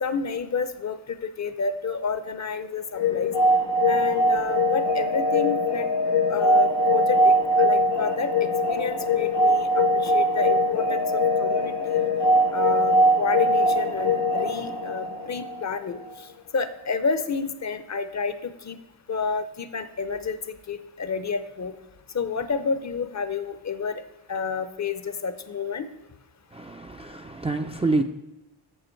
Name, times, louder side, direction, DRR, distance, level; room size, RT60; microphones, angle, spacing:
voice 1, 0.0-3.3 3.8-5.9 6.3-12.1 12.5-16.3 16.5-18.8 19.1-21.7 22.1-24.0 24.3-25.9, left 5 dB, 40° left, 12 dB, 0.6 m, -30 dB
sound 1, 3.0-15.7, equal, 65° left, 1.0 m, -22 dB
voice 2, 26.5-28.0, right 2 dB, 15° right, 4 dB, 0.4 m, -27 dB
7.9 x 6.9 x 4.5 m, 1.0 s
cardioid pair, 75°, 46 cm